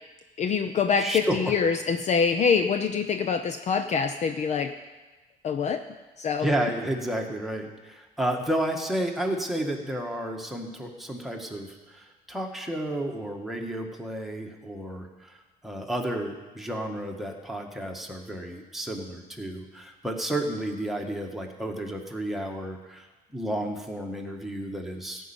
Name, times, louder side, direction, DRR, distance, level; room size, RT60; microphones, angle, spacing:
voice 1, 0.4-4.7 5.4-5.8 6.2-6.5, left 6 dB, 45° left, 8 dB, 0.7 m, -25 dB
voice 2, 1.0-1.5 6.4-15.4 15.6-23.1 23.3-25.3, right 1 dB, ahead, 0 dB, 1.8 m, -31 dB
14.5 x 5.5 x 8.9 m, 1.2 s
cardioid pair, 110°, 17 cm